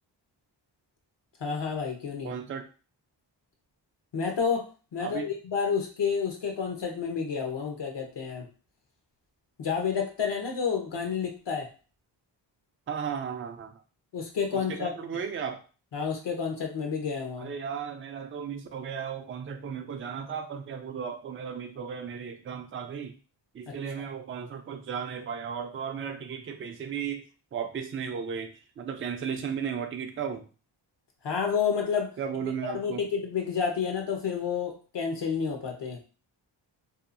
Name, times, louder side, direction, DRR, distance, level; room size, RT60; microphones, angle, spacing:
voice 1, 1.4-2.3 4.1-8.5 9.6-11.7 14.1-14.9 15.9-17.5 31.2-32.1 32.6-36.0, left 6 dB, 65° left, 2 dB, 0.8 m, -30 dB
voice 2, 2.2-2.7 5.0-5.3 12.9-13.8 14.5-15.6 17.4-23.2 23.5-27.3 27.5-30.5 32.2-33.0, right 7 dB, 30° right, 7 dB, 0.4 m, -35 dB
2.7 x 2.3 x 2.5 m, 0.35 s
cardioid pair, 75°, 46 cm